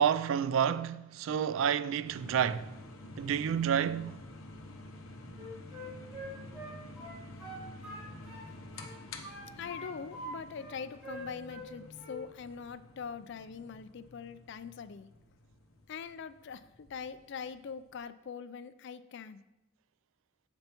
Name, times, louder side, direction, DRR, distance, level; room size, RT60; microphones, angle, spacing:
voice 1, 0.0-2.7 3.2-4.2, right 8 dB, 75° right, 0.3 m, -29 dB
sound 1, 2.0-18.0, left 2 dB, 85° left, 0.8 m, -50 dB
Wind instrument woodwind instrument, 5.3-8.5 8.7-10.3 10.6-11.7 11.9-12.2, equal, 5° right, 2.3 m, -45 dB
voice 2, 9.6-15.1 15.9-19.4, left 6 dB, 60° left, 0.4 m, -43 dB
8.8 x 6.9 x 2.9 m
head